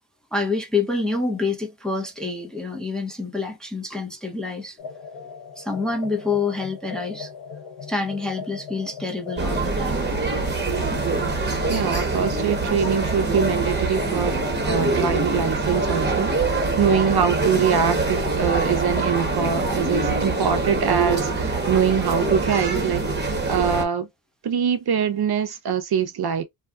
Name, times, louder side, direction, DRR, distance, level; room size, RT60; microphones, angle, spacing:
voice 1, 0.3-4.8 5.6-7.3 7.9-10.0, left 3 dB, ahead, 0.6 m, -27 dB
sound 1, 4.8-20.7, left 6 dB, 90° left, 1.0 m, -37 dB
sound 2, 9.4-23.9, right 3 dB, 20° right, 1.0 m, -24 dB
voice 2, 11.7-24.1 24.4-26.4, right 7 dB, 55° right, 0.6 m, -24 dB
2.7 x 2.2 x 2.3 m
cardioid pair, 85°, 46 cm